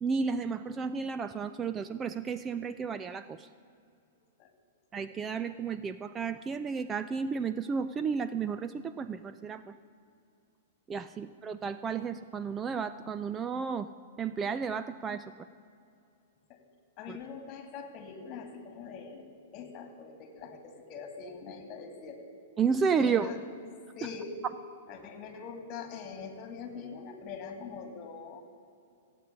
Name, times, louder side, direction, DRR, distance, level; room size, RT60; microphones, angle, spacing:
voice 1, 0.0-3.5 4.9-9.6 10.9-13.9 14.2-15.3 17.1-17.2 22.6-23.3, right 5 dB, 20° right, 12 dB, 0.4 m, -32 dB
voice 2, 17.0-19.3 19.5-22.2 23.0-23.4 24.0-24.4 24.9-28.4, left 5 dB, 35° left, 6 dB, 2.6 m, -43 dB
16.0 x 8.8 x 9.5 m, 2.5 s
hypercardioid pair, 140°, 0 cm